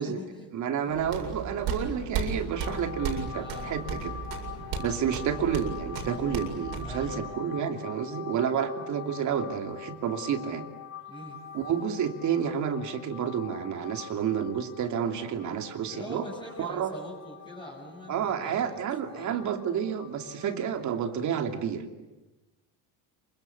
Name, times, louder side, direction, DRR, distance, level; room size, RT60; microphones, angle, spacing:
voice 1, 0.0-0.5 0.8-0.9 3.3-3.7 6.8-7.4 11.1-11.4 15.9-19.4 20.6-20.8, left 1 dB, 10° left, -3 dB, 6.7 m, -44 dB
voice 2, 0.5-4.2 4.8-10.7 11.5-16.2 16.6-16.9 18.1-22.1, right 8 dB, 50° right, 6 dB, 2.9 m, -30 dB
sound 1, 0.9-7.2, right 5 dB, 70° right, 7.7 m, -35 dB
sound 2, 2.5-20.6, left 8 dB, 45° left, 3.4 m, -44 dB
27.5 x 25.5 x 8.4 m, 1.1 s
cardioid pair, 150°, 38 cm